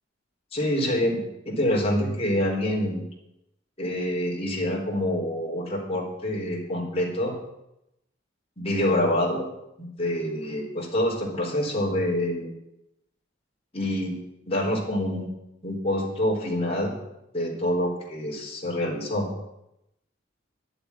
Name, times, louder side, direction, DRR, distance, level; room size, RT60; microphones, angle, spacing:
voice 1, 0.5-3.0 3.8-7.3 8.6-9.4 9.8-12.5 13.7-14.2 14.5-15.3 15.6-16.9 17.3-19.3, left 1 dB, 30° left, -2 dB, 4.2 m, -26 dB
11.0 x 7.9 x 9.9 m, 0.86 s
head